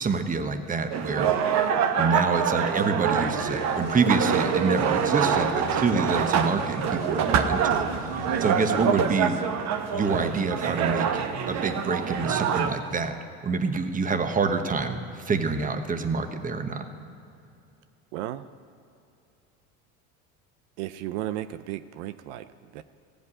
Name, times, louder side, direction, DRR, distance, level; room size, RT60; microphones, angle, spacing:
voice 1, 0.0-1.3 2.0-9.4 9.9-11.1 11.4-13.2 13.4-16.9, right 4 dB, 25° right, 7 dB, 1.1 m, -27 dB
sound 1, 0.9-12.7, right 7 dB, 50° right, 1.0 m, -25 dB
voice 2, 1.1-1.5 5.7-6.4 10.8-11.2 18.1-18.4 20.8-22.8, right 13 dB, 80° right, 12 dB, 0.5 m, -35 dB
sound 2, 3.0-8.6, left 8 dB, 85° left, 0.9 m, -43 dB
15.0 x 5.2 x 9.7 m, 2.6 s
supercardioid pair, 95°, 34 cm